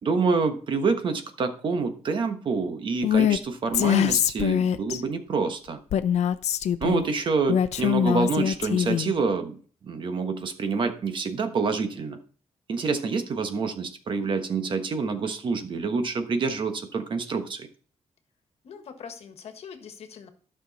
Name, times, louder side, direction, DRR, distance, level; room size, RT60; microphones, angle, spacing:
voice 1, 0.0-5.8 6.8-9.5 9.8-12.2 12.7-17.7, right 4 dB, 45° right, 7 dB, 1.2 m, -27 dB
Female speech woman speaking, 3.0-3.4 3.7-5.0 5.9-7.0 7.5-9.1, left 9 dB, 80° left, 0.6 m, -23 dB
voice 2, 18.6-20.3, left 6 dB, 65° left, 7 dB, 1.5 m, -43 dB
12.5 x 6.2 x 4.1 m, 0.43 s
wide cardioid pair, 160°, 11 cm